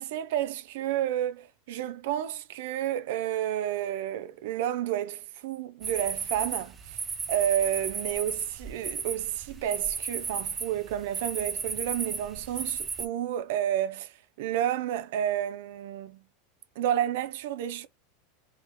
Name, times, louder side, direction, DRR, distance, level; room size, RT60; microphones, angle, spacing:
voice 1, 0.0-6.8 7.3-16.2 16.8-17.9, right 11 dB, 65° right, 0.5 m, -30 dB
sound 1, 5.8-13.1, right 5 dB, 15° right, 0.7 m, -35 dB
3.5 x 3.0 x 4.6 m
supercardioid pair, 155°, 0 cm